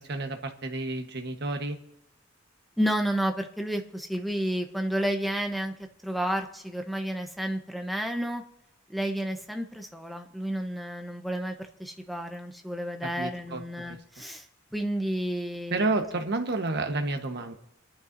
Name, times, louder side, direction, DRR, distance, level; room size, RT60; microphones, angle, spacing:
voice 1, 0.0-1.8 13.0-14.0 15.7-17.5, right 2 dB, 55° right, 5 dB, 1.2 m, -30 dB
voice 2, 2.8-5.7 6.0-8.4 8.9-14.4 14.7-15.9, equal, ahead, 4 dB, 0.9 m, -31 dB
28.0 x 11.0 x 2.7 m, 0.86 s
head